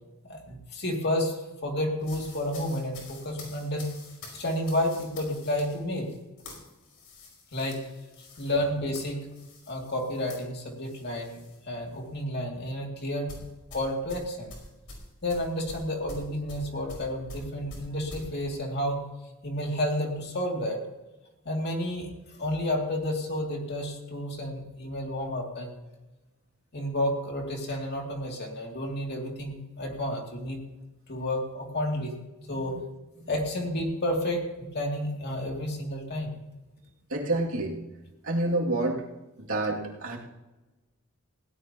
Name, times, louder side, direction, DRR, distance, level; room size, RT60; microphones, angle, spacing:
voice 1, 0.2-3.9 4.3-6.1 7.5-7.9 8.4-9.3 9.7-11.4 11.7-13.3 13.7-14.5 15.2-19.0 19.4-20.8 21.4-22.1 22.4-25.8 26.7-30.6 31.1-32.1 32.5-32.8 33.3-34.4 34.7-36.3, left 1 dB, 50° left, 0 dB, 2.7 m, -31 dB
sound 1, 2.0-11.6 11.9-12.2 13.3-18.3, left 2 dB, 90° left, 5.1 m, -46 dB
voice 2, 37.1-37.8 38.2-39.0 39.4-40.2, right 2 dB, 70° right, -2 dB, 2.6 m, -28 dB
19.5 x 17.0 x 3.0 m, 1.1 s
head